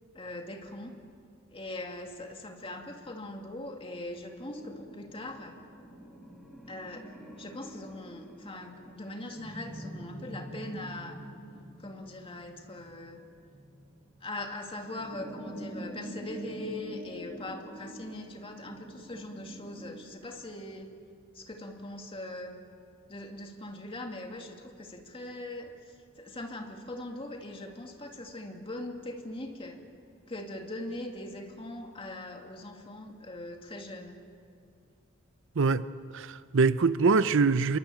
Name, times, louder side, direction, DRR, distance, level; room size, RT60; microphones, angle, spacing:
voice 1, 0.1-1.0 1.5-5.6 6.7-7.1 7.4-11.2 11.8-13.2 14.2-20.9 21.3-22.5 23.1-29.8 30.3-34.2, left 1 dB, 25° left, 2.5 m, -41 dB
sound 1, 4.4-20.1, equal, ahead, 3.5 m, -45 dB
voice 2, 36.1-37.8, right 4 dB, 65° right, 0.6 m, -24 dB
27.0 x 23.0 x 8.6 m
head